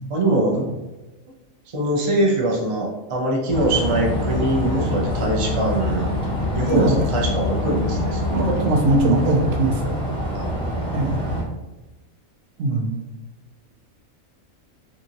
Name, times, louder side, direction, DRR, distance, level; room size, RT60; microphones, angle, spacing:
voice 1, 0.1-0.6 1.7-6.1 6.5-8.6 10.3-11.2, right 1 dB, 50° right, -2 dB, 0.3 m, -23 dB
sound 1, 3.5-8.6, left 6 dB, 60° left, 0.7 m, -29 dB
sound 2, 3.5-11.4, right 1 dB, 5° left, 0.6 m, -26 dB
voice 2, 8.3-10.0 10.9-11.2 12.6-13.0, right 2 dB, 70° right, 1 dB, 0.9 m, -21 dB
2.7 x 2.7 x 2.6 m, 1.1 s
omnidirectional pair, 1.4 m